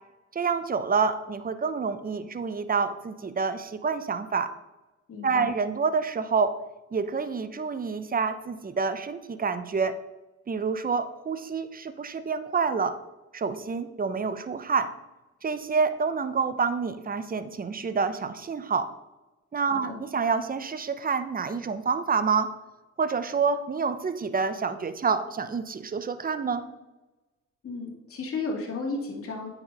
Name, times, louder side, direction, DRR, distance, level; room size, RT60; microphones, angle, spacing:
voice 1, 0.3-4.5 5.2-6.5 6.9-10.0 10.5-13.0 13.3-14.9 15.4-18.9 19.5-22.5 23.0-26.6, right 5 dB, 30° right, 11 dB, 0.8 m, -28 dB
voice 2, 5.1-5.5 19.6-20.0 27.6-29.5, left 3 dB, 45° left, 0 dB, 2.4 m, -34 dB
8.8 x 6.0 x 5.4 m, 1.1 s
cardioid pair, 90°, 30 cm